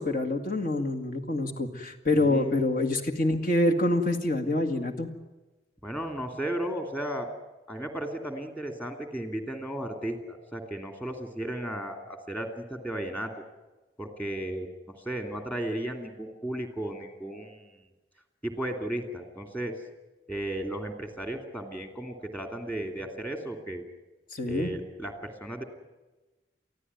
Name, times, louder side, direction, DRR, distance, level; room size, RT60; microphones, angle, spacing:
voice 1, 0.0-5.1 24.3-24.7, left 2 dB, 50° left, 4 dB, 2.1 m, -26 dB
voice 2, 2.1-2.6 5.8-7.3 7.7-13.3 14.0-14.7 15.0-17.8 18.4-19.7 20.3-23.8 24.5-25.6, right 1 dB, 10° left, 5 dB, 2.6 m, -34 dB
24.0 x 15.5 x 9.5 m, 1.1 s
head